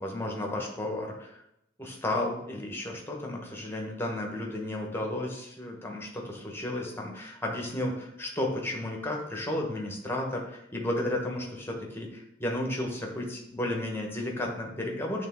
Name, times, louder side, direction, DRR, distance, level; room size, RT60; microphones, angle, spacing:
voice 1, 0.0-1.4 1.8-15.3, left 1 dB, 10° left, 0 dB, 1.1 m, -33 dB
8.3 x 3.5 x 3.6 m, 0.79 s
head